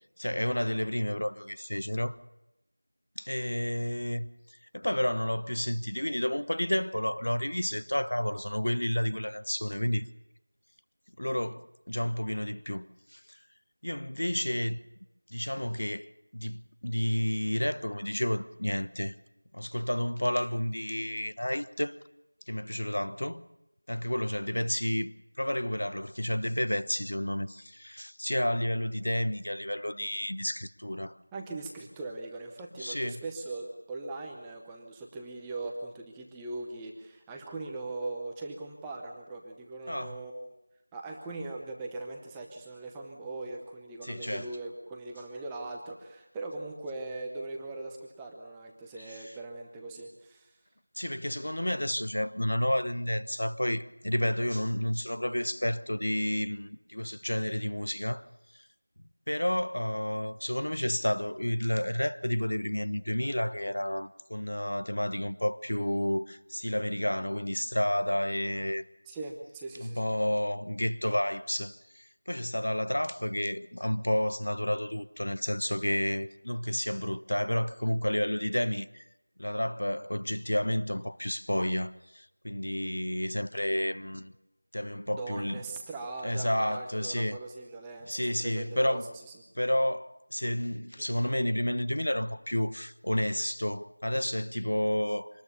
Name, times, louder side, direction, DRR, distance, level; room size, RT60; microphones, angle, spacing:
voice 1, 0.2-2.2 3.2-4.3 4.7-10.1 11.2-13.4 13.8-14.8 15.3-19.1 19.5-21.9 22.5-23.4 23.9-31.2 32.8-33.2 39.9-40.2 44.0-44.5 49.0-49.3 51.0-58.3 58.5-58.6 59.3-68.9 69.8-79.0 79.4-84.3 84.7-85.6 86.2-87.4 88.1-89.1 89.5-95.3, left 1 dB, 70° left, 1.2 m, -31 dB
voice 2, 31.3-40.5 40.9-50.5 69.1-70.1 85.2-89.0 91.0-91.1, right 2 dB, 5° right, 0.8 m, -40 dB
25.5 x 20.0 x 6.9 m
figure-of-eight pair, 180°, 0 cm